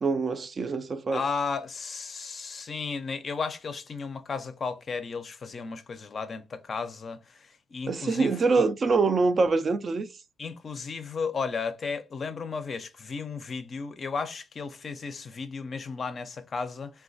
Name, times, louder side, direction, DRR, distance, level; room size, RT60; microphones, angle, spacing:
voice 1, 0.0-1.2 7.9-10.1, right 4 dB, 40° right, 0.3 m, -24 dB
voice 2, 1.1-8.3 10.4-17.0, left 5 dB, 45° left, 0.4 m, -34 dB
3.1 x 2.2 x 2.5 m
cardioid pair, 90°, 0 cm